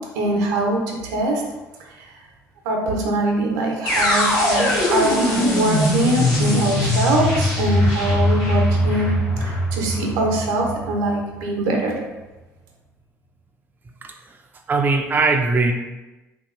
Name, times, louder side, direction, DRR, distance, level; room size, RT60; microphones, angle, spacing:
voice 1, 0.1-1.4 2.6-12.1, right 2 dB, 75° right, 1 dB, 0.6 m, -23 dB
sound 1, 3.9-11.8, left 1 dB, 65° left, 0.9 m, -21 dB
voice 2, 14.0-14.4 14.7-15.7, right 3 dB, 25° right, 4 dB, 0.3 m, -20 dB
2.9 x 2.7 x 2.5 m, 1.1 s
hypercardioid pair, 55°, 8 cm